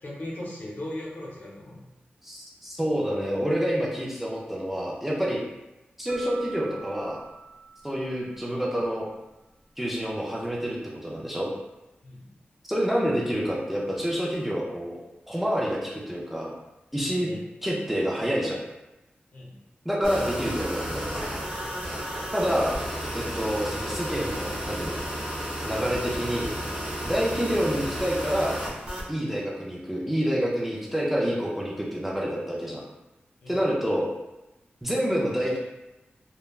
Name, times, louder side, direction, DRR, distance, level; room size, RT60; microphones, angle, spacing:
voice 1, 0.0-1.8 12.0-12.3 16.9-17.4 19.3-19.6 21.6-21.8 33.4-33.6, left 1 dB, 60° left, -4 dB, 0.7 m, -39 dB
voice 2, 2.2-5.4 6.0-7.2 7.8-9.1 9.8-10.8 11.0-11.5 12.7-15.0 15.3-16.5 16.9-17.3 17.6-18.6 19.9-21.1 22.3-22.8 23.1-25.0 25.6-26.5 27.0-28.6 29.1-32.8 33.5-34.1 34.8-35.6, equal, 5° right, -4 dB, 0.4 m, -27 dB
sound 1, 6.1-8.8, right 6 dB, 75° right, 0.6 m, -45 dB
sound 2, 20.0-29.1, equal, 25° right, 0.8 m, -32 dB
3.2 x 2.2 x 2.3 m, 1.0 s
wide cardioid pair, 125°, 4 cm